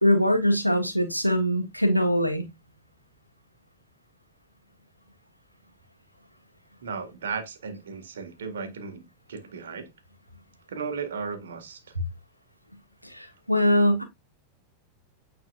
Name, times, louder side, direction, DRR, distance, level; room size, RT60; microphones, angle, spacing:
voice 1, 0.0-2.5 13.0-14.0, equal, 90° left, 1.3 m, -22 dB
voice 2, 6.8-9.9 10.7-11.8, right 5 dB, 65° right, 1.8 m, -35 dB
9.0 x 4.2 x 2.5 m
figure-of-eight pair, 90°, 0 cm